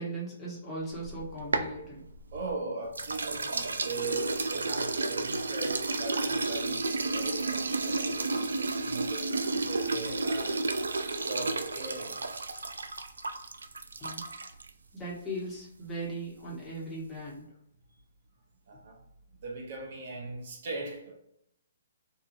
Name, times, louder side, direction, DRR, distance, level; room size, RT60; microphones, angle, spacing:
voice 1, 0.0-2.0 14.0-14.3 14.9-17.5, right 1 dB, 10° left, -6 dB, 1.1 m, -38 dB
sound 1, 0.9-2.5 2.9-14.7, right 3 dB, 80° right, 0.3 m, -32 dB
voice 2, 2.3-8.4 8.6-10.6 11.1-12.2 18.7-19.0 19.4-21.1, right 3 dB, 55° right, 0 dB, 0.7 m, -39 dB
2.8 x 2.3 x 2.6 m, 0.79 s
figure-of-eight pair, 135°, 0 cm